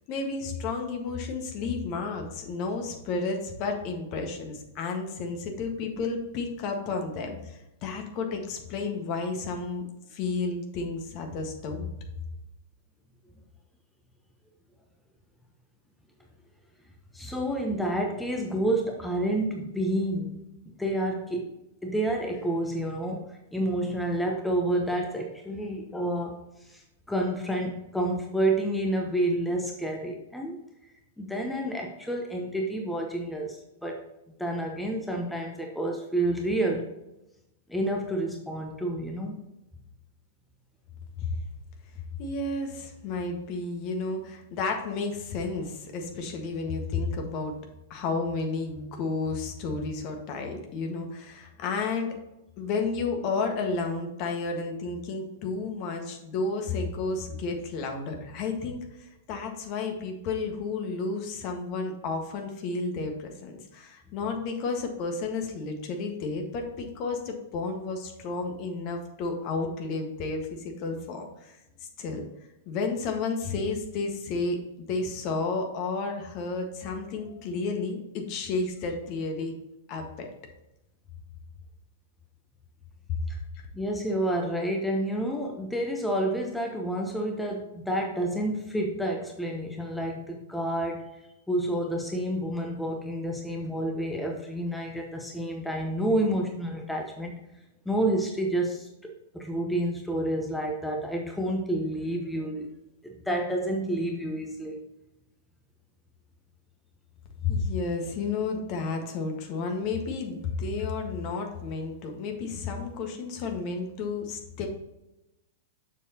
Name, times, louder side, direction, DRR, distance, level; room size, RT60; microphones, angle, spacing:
voice 1, 0.1-9.8 10.1-11.9 41.2-41.3 42.2-47.5 47.9-52.2 52.6-58.8 59.3-71.6 72.0-72.2 72.6-79.6 79.9-80.3 83.6-83.7 107.4-114.7, left 4 dB, 40° left, 3 dB, 1.6 m, -32 dB
voice 2, 17.1-21.5 21.8-26.8 27.1-30.6 31.2-36.9 37.7-39.4 83.3-83.4 83.7-91.0 91.5-97.4 97.8-102.7 103.0-104.8, right 1 dB, 5° left, 1 dB, 1.0 m, -29 dB
7.1 x 6.8 x 2.9 m, 0.93 s
figure-of-eight pair, 100°, 0 cm